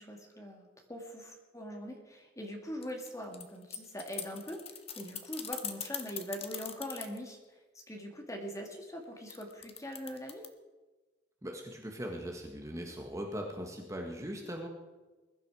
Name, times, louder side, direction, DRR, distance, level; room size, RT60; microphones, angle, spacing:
voice 1, 0.0-10.4, equal, 15° left, 2 dB, 2.3 m, -42 dB
sound 1, 2.8-7.2 9.3-10.5, left 8 dB, 35° left, 1.3 m, -41 dB
voice 2, 11.4-14.7, equal, 15° right, 1 dB, 1.6 m, -40 dB
21.5 x 11.5 x 4.9 m, 1.2 s
head